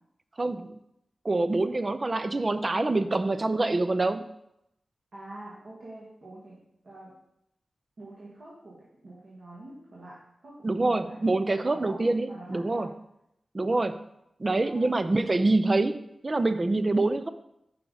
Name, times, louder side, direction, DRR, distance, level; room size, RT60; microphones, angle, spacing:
voice 1, 0.4-0.8 1.2-4.3 10.6-12.9 13.5-14.0 14.4-17.3, right 2 dB, 35° right, 12 dB, 0.4 m, -26 dB
voice 2, 5.1-6.6 6.8-7.1 8.0-12.0 12.3-12.9 14.6-15.1, right 1 dB, 65° right, -7 dB, 1.7 m, -46 dB
5.9 x 5.0 x 3.9 m, 0.82 s
cardioid pair, 65°, 0 cm